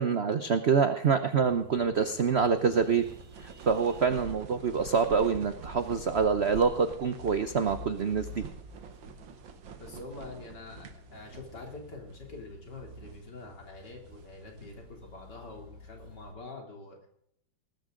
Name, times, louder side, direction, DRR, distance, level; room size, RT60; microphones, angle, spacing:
voice 1, 0.0-3.0 3.4-8.4, right 6 dB, 55° right, 9 dB, 0.7 m, -26 dB
sound 1, 1.4-16.4, left 3 dB, 30° right, 4.1 m, -50 dB
sound 2, 2.3-11.8 12.1-12.2 12.8-13.3 13.8-14.9, right 6 dB, 70° right, 2.0 m, -47 dB
voice 2, 9.8-17.1, left 3 dB, 55° left, 1 dB, 3.6 m, -45 dB
20.0 x 13.5 x 3.8 m, 0.72 s
omnidirectional pair, 2.2 m